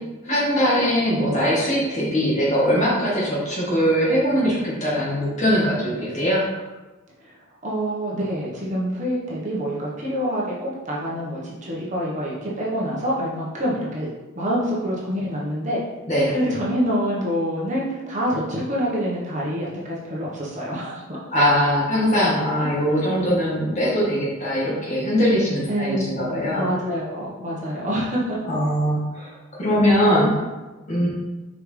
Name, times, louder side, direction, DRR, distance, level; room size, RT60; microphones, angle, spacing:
voice 1, 0.2-6.4 16.1-16.3 21.3-26.7 28.5-30.3 30.9-31.1, equal, 35° left, -6 dB, 1.9 m, -21 dB
voice 2, 7.6-14.1 14.3-15.8 16.3-21.2 22.6-22.7 25.7-28.5, equal, 35° right, -5 dB, 1.3 m, -26 dB
6.0 x 4.8 x 3.4 m, 1.2 s
head